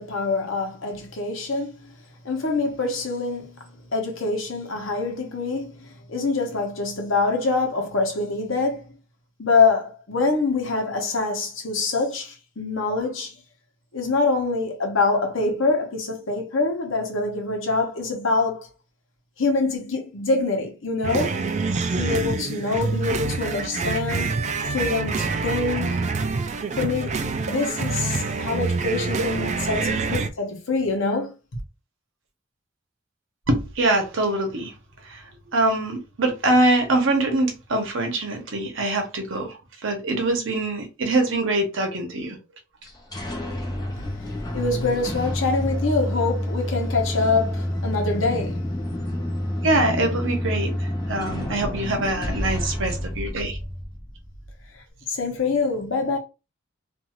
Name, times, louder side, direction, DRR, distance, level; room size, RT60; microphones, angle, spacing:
voice 1, 0.0-1.9 2.2-3.6 3.9-8.9 9.4-13.3 13.9-18.7 19.4-21.4 22.0-24.3 24.6-26.0 26.8-31.3 44.5-48.6 55.1-56.2, left 3 dB, 70° left, 1.0 m, -25 dB
sound 1, 21.0-30.3, right 4 dB, 35° right, 0.3 m, -26 dB
voice 2, 33.5-34.7 35.1-35.2 35.5-39.6 39.8-42.4 49.6-50.7 51.1-53.6, right 2 dB, 70° right, 0.9 m, -23 dB
sound 2, 42.8-54.5, left 1 dB, 20° left, 0.7 m, -28 dB
2.6 x 2.4 x 2.9 m
head